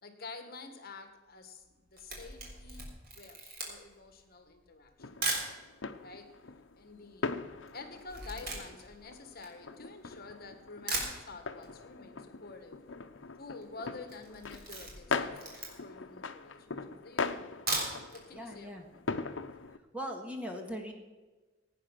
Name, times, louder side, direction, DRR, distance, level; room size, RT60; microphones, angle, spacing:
voice 1, 0.0-2.9 3.1-5.1 6.0-6.3 6.8-7.3 7.7-12.8 13.4-16.7 17.0-17.6 18.1-18.9, left 3 dB, 50° left, 6 dB, 1.7 m, -48 dB
Camera, 1.7-5.5 6.2-6.3 6.5-10.2 10.6-10.7 10.9-11.7 12.0-12.1 12.4-12.5 12.7-13.1 13.4-13.7 14.0-16.0 16.5-16.6 17.4-18.2 18.6-18.7 19.0-19.1, right 2 dB, 50° right, 3.6 m, -38 dB
sound 1, 5.0-19.8, left 4 dB, 75° left, 0.8 m, -41 dB
voice 2, 18.3-18.9 19.9-20.9, equal, 5° right, 2 dB, 1.8 m, -39 dB
16.5 x 9.2 x 6.0 m, 1.3 s
head